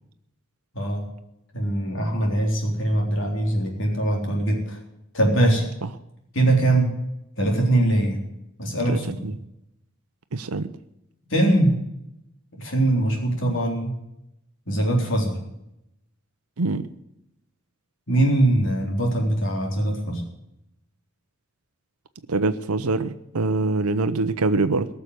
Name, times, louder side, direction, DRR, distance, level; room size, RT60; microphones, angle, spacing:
voice 1, 0.7-1.1 1.5-4.8 5.1-5.6 6.3-6.9 7.4-8.2 8.6-9.2 11.3-11.8 12.6-13.9 14.7-15.4 18.1-20.2, right 1 dB, 60° left, 0 dB, 3.8 m, -22 dB
voice 2, 8.9-9.3 10.3-10.7 16.6-16.9 22.3-24.9, right 3 dB, 90° right, 10 dB, 0.7 m, -24 dB
18.0 x 6.8 x 8.2 m, 0.85 s
head